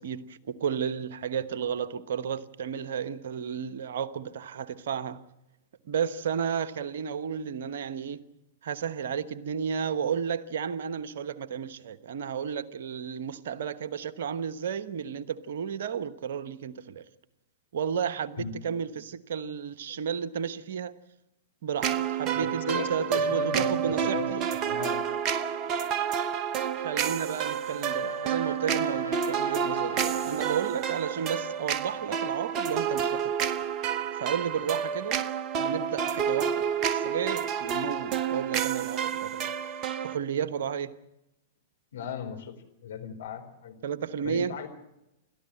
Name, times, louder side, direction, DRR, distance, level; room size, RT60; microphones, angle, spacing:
voice 1, 0.0-5.2 5.9-8.3 8.6-17.0 17.7-20.9 21.6-24.5 26.8-33.3 34.2-35.2 35.6-39.5 40.0-41.0 43.8-44.6, right 7 dB, 60° right, 1.1 m, -32 dB
sound 1, 21.8-40.2, right 8 dB, 35° right, 1.0 m, -29 dB
voice 2, 22.4-24.3 24.7-25.0 41.9-42.5 42.8-43.8 44.2-44.7, left 7 dB, 65° left, 4.3 m, -37 dB
Brass instrument, 26.9-31.7, right 1 dB, 85° right, 0.8 m, -42 dB
29.0 x 13.5 x 7.8 m
figure-of-eight pair, 100°, 0 cm